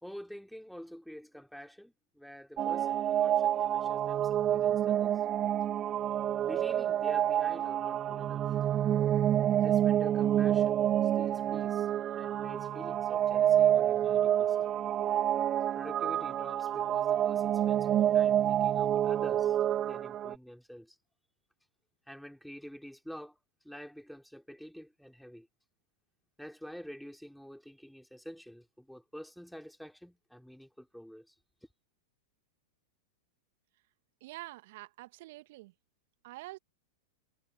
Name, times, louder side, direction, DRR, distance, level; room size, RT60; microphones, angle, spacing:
voice 1, 0.0-5.2 6.4-8.5 9.6-11.9 12.1-14.7 15.7-19.6 19.8-21.0 22.1-23.4 23.6-25.5 26.4-31.3, equal, ahead, 3.0 m, -48 dB
sound 1, 2.6-20.3, right 11 dB, 30° right, 0.4 m, -28 dB
voice 2, 34.2-35.7 36.2-36.6, right 19 dB, 55° right, 1.7 m, -46 dB
figure-of-eight pair, 95°, 0 cm